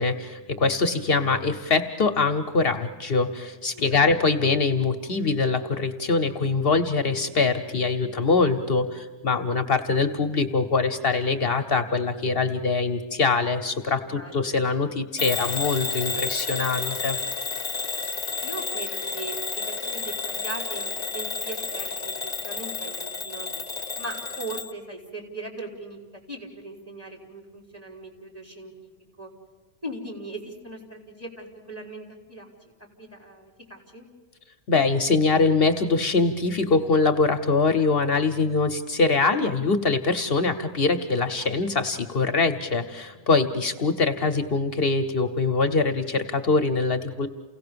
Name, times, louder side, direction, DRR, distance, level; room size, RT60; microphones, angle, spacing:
voice 1, 0.0-17.2 34.7-47.3, left 4 dB, 65° left, 8 dB, 1.1 m, -23 dB
voice 2, 3.7-4.3 14.0-14.6 18.4-22.2 22.4-23.5 24.0-28.9 29.2-29.3 29.8-32.5 33.0-34.1, right 2 dB, 15° right, 0 dB, 4.0 m, -39 dB
Bell / Alarm, 15.2-24.7, left 4 dB, 40° left, 0.9 m, -31 dB
29.0 x 17.0 x 6.9 m, 1.3 s
omnidirectional pair, 1.1 m